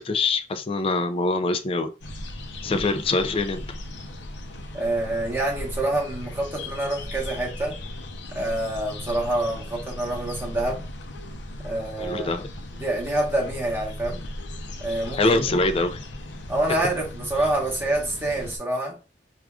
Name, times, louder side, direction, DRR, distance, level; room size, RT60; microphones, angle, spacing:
voice 1, 0.0-1.9 2.6-3.6 12.0-12.5 15.2-16.0, left 3 dB, 30° left, 0.3 m, -24 dB
sound 1, 2.0-18.6, left 1 dB, 75° left, 0.6 m, -37 dB
voice 2, 4.7-7.8 8.3-10.8 11.6-12.3 12.7-14.2 14.8-15.4 16.5-19.0, right 1 dB, 15° right, 1.1 m, -27 dB
4.8 x 2.4 x 2.3 m
head